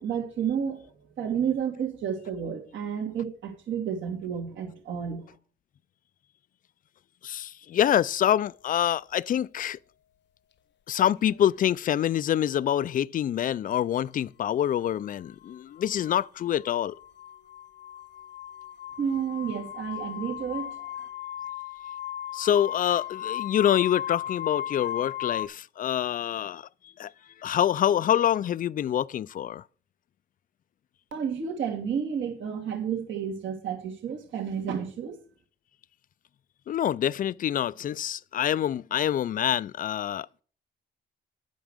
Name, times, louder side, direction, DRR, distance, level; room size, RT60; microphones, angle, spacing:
voice 1, 0.0-5.3 19.0-20.9 31.1-35.2, right 7 dB, 75° right, 2.8 m, -31 dB
voice 2, 7.2-9.8 10.9-17.0 22.3-26.7 27.0-27.1 27.4-29.6 36.7-40.4, left 10 dB, 45° left, 0.4 m, -26 dB
sound 1, 11.3-11.8 14.0-14.1 15.0-25.5, left 11 dB, 60° left, 0.7 m, -36 dB
9.1 x 6.0 x 6.5 m
cardioid pair, 90°, 20 cm